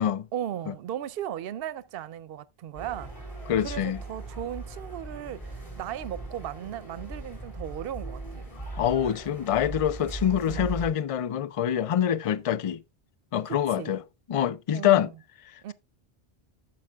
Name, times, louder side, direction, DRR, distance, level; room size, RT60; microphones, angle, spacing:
voice 1, 0.3-3.1 3.6-8.4 10.4-10.7 13.5-14.0 14.7-15.1 15.6-15.7, right 11 dB, 65° right, 0.8 m, -36 dB
sound 1, 2.7-10.9, right 2 dB, 30° left, 4.4 m, -39 dB
voice 2, 3.5-4.0 8.7-12.8 13.3-14.0 14.3-15.1, left 10 dB, 45° left, 0.4 m, -25 dB
12.0 x 7.5 x 2.3 m
omnidirectional pair, 1.1 m